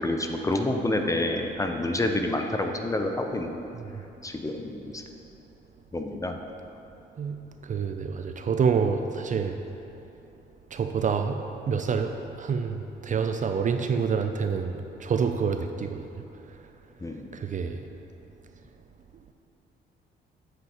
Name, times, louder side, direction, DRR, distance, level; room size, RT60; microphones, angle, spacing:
voice 1, 0.0-3.6 4.2-5.0 5.9-6.4 17.0-17.3, left 1 dB, 15° left, 4 dB, 0.6 m, -28 dB
voice 2, 7.2-9.6 10.7-11.4 11.7-16.0 17.3-17.8, right 6 dB, 40° right, 6 dB, 0.4 m, -27 dB
8.8 x 7.7 x 3.0 m, 2.9 s
cardioid pair, 90°, 20 cm